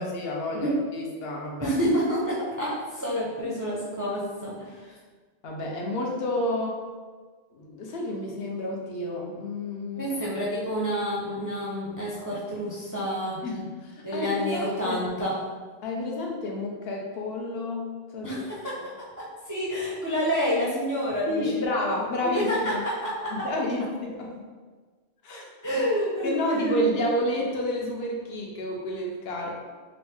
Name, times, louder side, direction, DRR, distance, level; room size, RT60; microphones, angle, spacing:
voice 1, 0.0-1.8 5.4-6.8 7.5-10.1 13.4-15.0 15.8-18.3 18.5-18.6 21.3-22.8 23.3-24.3 25.2-25.5 26.2-29.6, left 1 dB, 70° left, -1 dB, 0.9 m, -30 dB
voice 2, 1.6-5.0 9.9-13.4 14.0-15.4 18.2-21.7 22.2-23.5 25.6-27.1, equal, 25° right, -7 dB, 0.4 m, -28 dB
3.1 x 2.6 x 3.4 m, 1.4 s
omnidirectional pair, 1.1 m